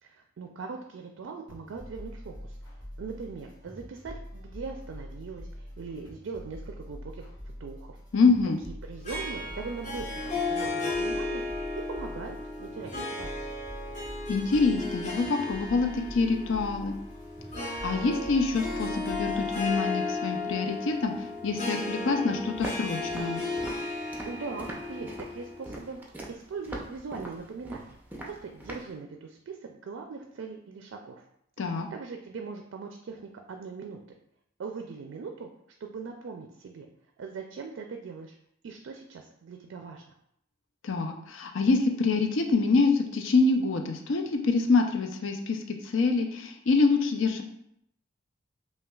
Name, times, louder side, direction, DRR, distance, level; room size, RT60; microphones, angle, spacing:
voice 1, 0.0-2.6 3.0-8.0 8.8-13.5 24.2-26.0 26.3-28.0 28.2-31.3 31.9-34.0 34.6-35.5 35.8-36.9 37.2-38.3 38.6-40.1, right 4 dB, 75° right, 3 dB, 0.4 m, -40 dB
sound 1, 1.5-19.8, equal, 20° left, 1.1 m, -44 dB
voice 2, 8.1-8.6 14.3-16.9 17.8-23.4 31.6-31.9 40.8-47.4, left 4 dB, 80° left, 4 dB, 0.5 m, -26 dB
Harp, 9.1-25.8, left 2 dB, 40° left, 1.3 m, -34 dB
Walk footsteps, 22.6-28.9, right 1 dB, 10° right, 0.4 m, -41 dB
5.5 x 2.3 x 2.3 m, 0.74 s
head